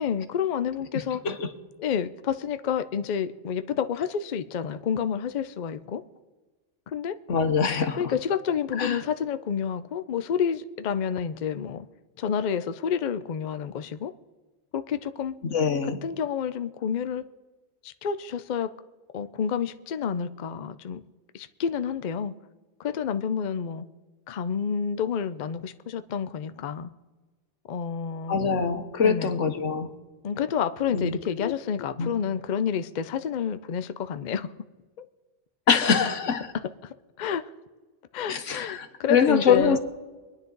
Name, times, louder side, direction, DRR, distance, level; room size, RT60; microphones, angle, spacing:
voice 1, 0.0-1.2 1.8-6.0 6.9-7.2 8.0-11.9 12.2-14.1 14.7-15.3 15.8-17.2 17.8-18.7 19.1-21.0 21.3-22.3 22.8-23.8 24.3-26.9 27.7-28.4 29.0-29.3 30.2-34.5 36.8-37.4 38.1-39.8, left 7 dB, 50° left, 0.6 m, -29 dB
voice 2, 7.3-8.0 8.8-9.0 15.5-16.0 28.3-29.9 30.9-31.5 32.0-32.1 35.7-36.5 38.3-39.8, left 6 dB, 85° left, 1.5 m, -24 dB
24.5 x 9.9 x 3.9 m
omnidirectional pair, 1.2 m